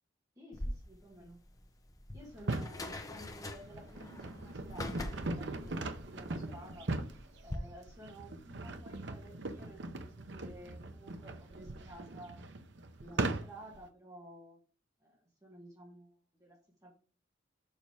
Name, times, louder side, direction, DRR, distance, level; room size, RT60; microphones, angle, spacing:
voice 1, 0.4-1.4 2.1-6.9 7.4-12.4 13.0-14.6 15.0-16.9, equal, 20° right, -2 dB, 2.0 m, -53 dB
sound 1, 0.5-7.6, left 1 dB, 20° left, 0.7 m, -44 dB
sound 2, 2.3-2.8 3.4-13.8, right 2 dB, 65° right, 0.8 m, -40 dB
6.9 x 5.8 x 3.5 m, 0.36 s
head